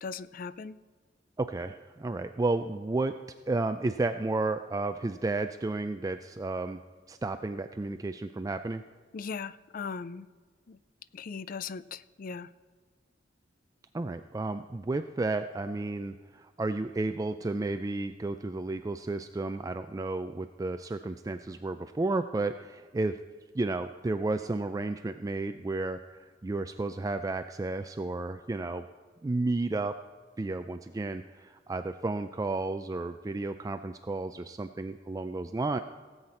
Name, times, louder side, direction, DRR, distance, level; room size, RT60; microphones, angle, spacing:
voice 1, 0.0-0.8 9.1-10.3 10.7-10.8 11.1-12.5, left 5 dB, 50° left, 17 dB, 0.4 m, -38 dB
voice 2, 1.4-3.2 3.5-6.8 7.1-8.8 13.9-23.2 23.5-28.8 29.2-29.9 30.4-35.8, right 2 dB, 20° right, 8 dB, 0.3 m, -32 dB
17.5 x 8.0 x 4.2 m, 1.5 s
head